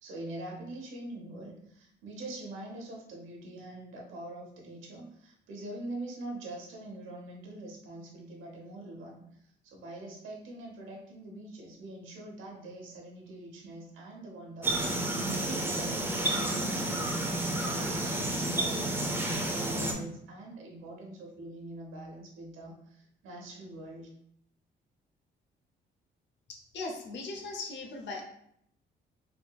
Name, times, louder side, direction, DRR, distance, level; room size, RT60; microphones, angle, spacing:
voice 1, 0.0-9.2 9.6-24.1, right 1 dB, 85° right, 0 dB, 0.9 m, -44 dB
sound 1, 14.6-19.9, right 1 dB, 10° right, 0.6 m, -30 dB
voice 2, 26.5-28.2, left 3 dB, 60° left, 2 dB, 0.8 m, -39 dB
3.5 x 2.8 x 2.3 m, 0.72 s
cardioid pair, 90°, 20 cm